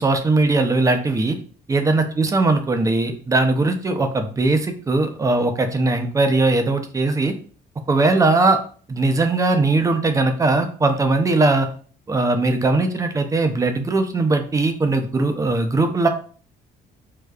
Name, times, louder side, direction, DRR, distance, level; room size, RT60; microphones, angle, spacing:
voice 1, 0.0-1.4 1.7-7.3 7.9-8.6 8.9-11.7 12.1-16.1, right 2 dB, 20° right, 7 dB, 0.5 m, -19 dB
4.9 x 2.2 x 2.2 m, 0.42 s
cardioid pair, 110°, 17 cm